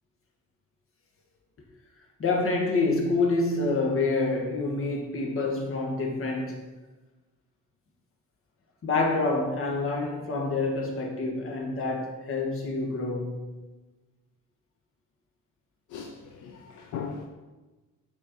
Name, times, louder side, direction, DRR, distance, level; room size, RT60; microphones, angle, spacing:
voice 1, 2.2-6.7 8.8-13.5, left 3 dB, 45° left, 1.7 m, -27 dB
voice 2, 15.9-17.3, left 6 dB, 75° left, 0.7 m, -38 dB
7.1 x 4.7 x 4.5 m
cardioid pair, 90°, 30 cm